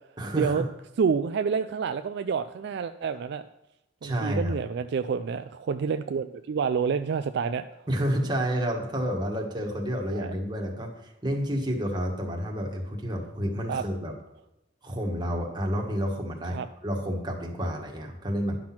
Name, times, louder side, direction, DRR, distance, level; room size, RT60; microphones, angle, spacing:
voice 1, 0.2-0.7 4.0-4.6 7.9-14.1 14.8-18.6, equal, 20° right, 0 dB, 1.5 m, -30 dB
voice 2, 1.0-3.4 4.0-7.8 10.1-10.3 13.7-13.8 16.5-16.7, right 6 dB, 55° right, 9 dB, 0.3 m, -28 dB
10.5 x 6.0 x 5.9 m, 0.94 s
head